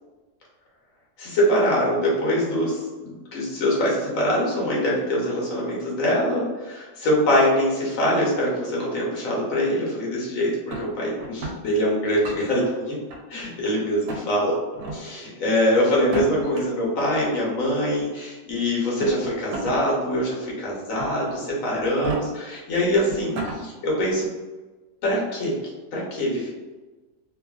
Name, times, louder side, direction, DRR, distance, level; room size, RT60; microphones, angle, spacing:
voice 1, 1.2-13.0 13.3-14.5 15.0-24.3 25.0-25.6 25.9-26.5, equal, 65° left, -4 dB, 1.2 m, -23 dB
sound 1, 10.7-11.6 12.1-12.7 13.1-13.7 14.1-14.2 14.7-15.0 16.0-16.6 17.7-17.8 18.8-19.8 20.2-20.3 21.0-21.4 21.9-22.2 22.8-22.9 23.1-23.6, right 2 dB, 80° right, 1.1 m, -32 dB
2.9 x 2.4 x 2.3 m, 1.2 s
omnidirectional pair, 1.6 m